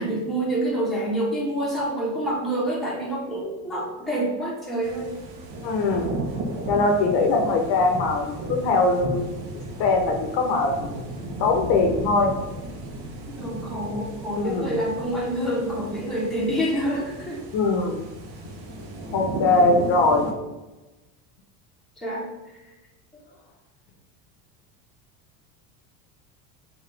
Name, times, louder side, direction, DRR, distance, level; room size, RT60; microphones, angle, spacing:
voice 1, 0.0-5.2 13.3-17.5 22.0-22.3, right 1 dB, ahead, -5 dB, 1.0 m, -27 dB
sound 1, 4.8-20.3, right 2 dB, 55° right, 0.9 m, -35 dB
voice 2, 5.6-6.1 6.7-9.2 9.8-11.0 11.4-12.3 14.3-14.7 17.5-18.1 19.1-20.3, left 3 dB, 55° left, 2 dB, 0.8 m, -21 dB
4.0 x 2.6 x 3.2 m, 1.1 s
supercardioid pair, 110°, 46 cm